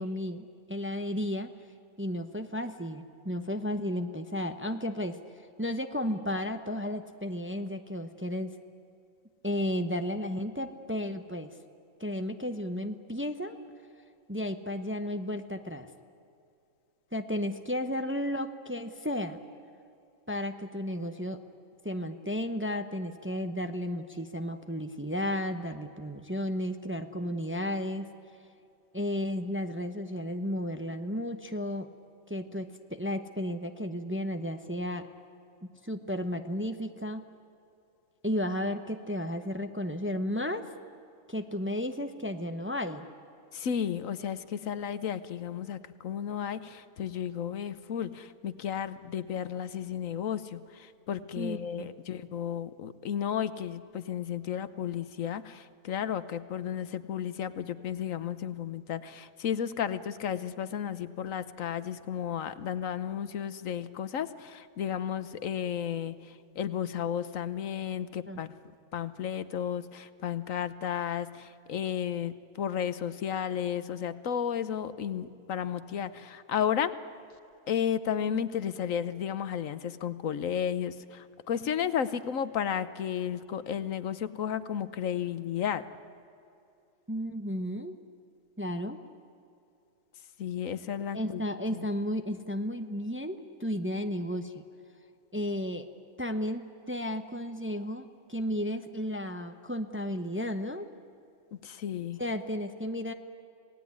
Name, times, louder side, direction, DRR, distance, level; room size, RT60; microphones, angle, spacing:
voice 1, 0.0-1.5 2.0-5.2 5.6-8.5 9.4-11.5 12.0-13.6 14.3-15.9 17.1-19.4 20.3-21.4 21.8-28.1 28.9-31.9 32.3-35.1 35.8-37.2 38.2-40.7 41.3-43.1 51.4-51.9 68.3-68.4 87.1-88.0 88.6-89.0 91.1-94.6 95.3-95.9 96.2-100.9 102.2-103.1, left 1 dB, 10° right, 7 dB, 0.8 m, -33 dB
voice 2, 43.5-68.5 68.9-76.9 77.7-85.8 90.4-91.4 91.7-91.9 101.5-102.2, left 8 dB, 75° left, 13 dB, 1.3 m, -33 dB
27.0 x 18.5 x 9.6 m, 2.6 s
omnidirectional pair, 1.4 m